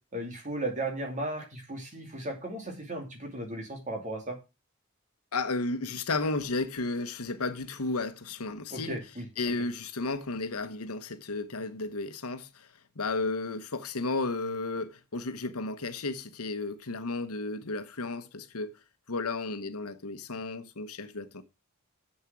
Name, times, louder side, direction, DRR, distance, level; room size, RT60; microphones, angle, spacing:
voice 1, 0.1-4.4 8.7-9.2, right 1 dB, 35° right, 2.9 m, -35 dB
voice 2, 5.3-9.0 9.4-12.7 12.9-18.8 19.1-21.4, left 3 dB, 80° left, 1.1 m, -33 dB
7.4 x 7.2 x 6.1 m
head